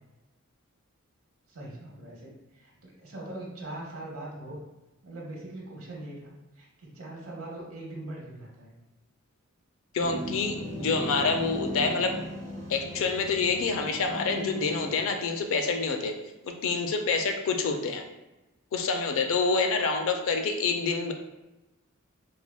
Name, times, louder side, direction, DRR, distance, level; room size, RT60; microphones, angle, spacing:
voice 1, 1.5-4.6 5.0-8.8, right 1 dB, 75° right, -2 dB, 0.8 m, -41 dB
voice 2, 9.9-12.1 12.7-16.1 16.4-18.0 18.7-21.1, left 4 dB, 65° left, 5 dB, 0.4 m, -27 dB
sound 1, 10.0-15.3, equal, 15° right, 0.5 m, -37 dB
3.3 x 2.2 x 2.2 m, 1.0 s
head